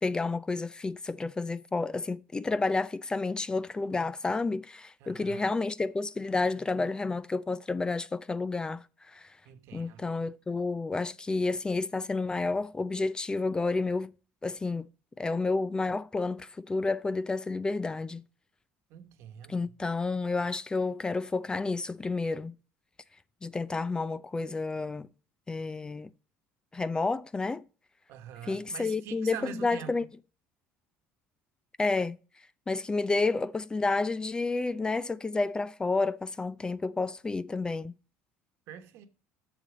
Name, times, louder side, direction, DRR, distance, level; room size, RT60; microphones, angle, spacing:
voice 1, 0.0-9.4 9.7-14.1 14.4-14.9 15.2-18.2 19.5-22.5 23.4-25.1 25.5-26.1 26.7-27.6 28.4-30.1 31.8-32.2 32.7-37.9, left 3 dB, 15° left, 0.4 m, -30 dB
voice 2, 5.0-5.6 9.4-10.0 18.9-19.5 28.1-30.1 38.7-39.1, right 9 dB, 70° right, 1.2 m, -44 dB
7.0 x 6.7 x 5.1 m
cardioid pair, 105°, 5 cm